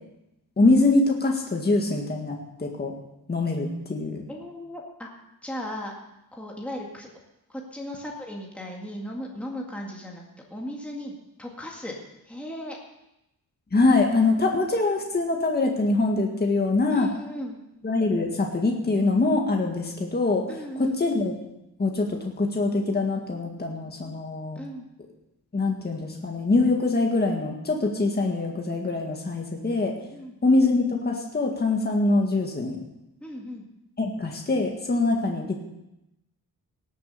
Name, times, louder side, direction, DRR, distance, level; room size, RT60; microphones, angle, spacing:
voice 1, 0.6-2.9 3.3-4.2 13.7-17.1 17.8-20.4 20.8-21.3 21.8-24.6 25.5-29.9 30.4-32.8 34.0-35.6, left 3 dB, 25° left, 1 dB, 1.8 m, -24 dB
voice 2, 4.3-5.1 5.4-5.9 6.3-7.1 7.5-10.2 10.5-11.1 11.4-11.9 12.3-12.8 16.9-17.6 20.5-21.0 24.6-24.9 30.1-30.3 33.2-33.6, equal, 5° left, -2 dB, 2.0 m, -36 dB
18.0 x 7.8 x 6.8 m, 0.90 s
wide cardioid pair, 155°, 37 cm